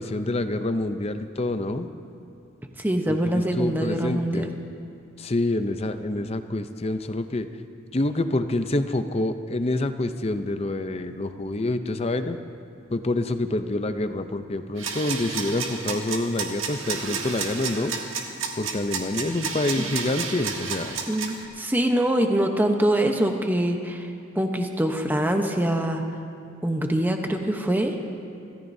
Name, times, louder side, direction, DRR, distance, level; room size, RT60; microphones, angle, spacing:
voice 1, 0.0-1.9 3.1-4.5 5.2-7.5 7.9-12.4 12.9-17.9 18.6-21.0, left 2 dB, 30° left, 9 dB, 0.6 m, -27 dB
voice 2, 2.8-4.5 19.7-19.9 21.1-24.1 24.4-26.0 26.6-27.9, right 1 dB, 10° right, 4 dB, 0.9 m, -24 dB
sound 1, 14.8-21.4, right 5 dB, 80° right, 1.5 m, -31 dB
26.0 x 14.5 x 2.7 m, 2.6 s
head